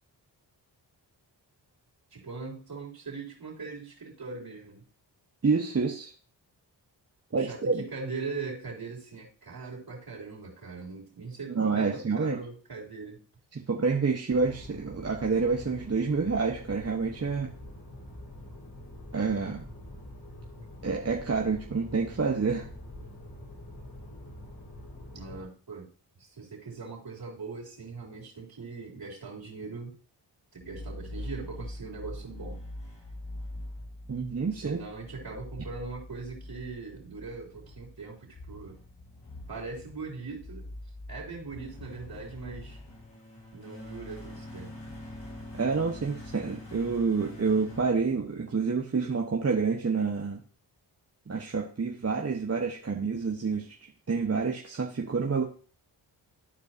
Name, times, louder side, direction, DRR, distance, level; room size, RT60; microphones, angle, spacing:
voice 1, 2.1-4.8 7.4-13.2 25.1-25.9 26.2-30.0 30.5-32.6 34.5-38.8 39.5-40.7 41.1-42.8 43.5-44.7, right 4 dB, 55° right, -3 dB, 3.5 m, -40 dB
voice 2, 5.4-6.1 7.3-7.8 11.5-12.4 13.5-17.5 19.1-19.7 20.8-22.7 34.1-34.8 45.5-50.4 51.3-53.8 54.1-55.4, right 4 dB, 35° right, 1 dB, 1.1 m, -28 dB
sound 1, 14.3-25.4, left 1 dB, 55° left, 4.5 m, -45 dB
sound 2, 30.6-48.7, left 1 dB, 75° left, 3.8 m, -44 dB
13.5 x 4.6 x 2.7 m, 0.40 s
cardioid pair, 50°, 44 cm